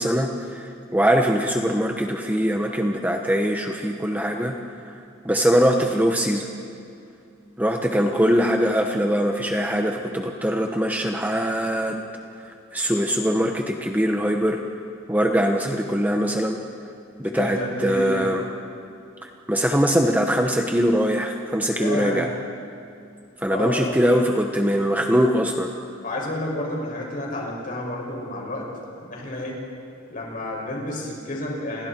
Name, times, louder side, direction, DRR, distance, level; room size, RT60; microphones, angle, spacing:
voice 1, 0.0-4.9 5.2-6.5 7.6-12.0 12.4-14.6 15.1-16.6 17.2-18.4 19.2-22.3 23.4-25.7, equal, 10° right, 3 dB, 1.0 m, -22 dB
voice 2, 17.2-18.4 21.8-22.3 23.5-23.9 26.0-28.7 28.9-29.6 30.1-31.9, left 1 dB, 40° left, -2 dB, 6.4 m, -30 dB
30.0 x 28.0 x 4.5 m, 2.5 s
head